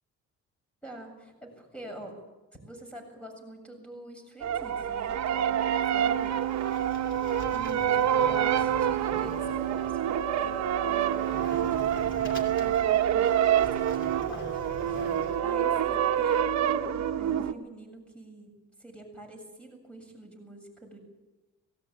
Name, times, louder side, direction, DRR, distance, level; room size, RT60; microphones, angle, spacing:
voice 1, 0.8-2.2 2.5-6.8 7.5-14.6 14.9-21.0, right 1 dB, 5° left, 3 dB, 7.4 m, -46 dB
sound 1, 4.4-17.5, right 9 dB, 60° right, 1.1 m, -27 dB
sound 2, 5.1-14.2, right 12 dB, 90° right, 0.8 m, -34 dB
Sliding door, 6.0-15.4, left 2 dB, 40° left, 3.1 m, -46 dB
19.5 x 16.5 x 8.8 m, 1.1 s
cardioid pair, 90°, 30 cm